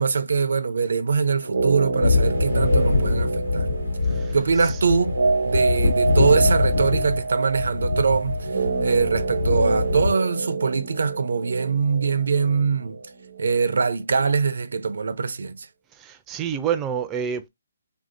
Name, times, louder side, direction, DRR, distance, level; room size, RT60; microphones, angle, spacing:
voice 1, 0.0-3.7 4.3-5.2 5.4-13.0 13.4-15.7, right 5 dB, 70° right, 0.5 m, -23 dB
sound 1, 1.4-13.5 13.8-13.9, right 3 dB, 90° right, 0.9 m, -27 dB
sound 2, 2.0-10.1, left 3 dB, 70° left, 1.1 m, -24 dB
voice 2, 4.0-4.4 15.9-17.5, right 8 dB, 15° right, 0.4 m, -28 dB
3.0 x 2.7 x 2.5 m
hypercardioid pair, 160°, 0 cm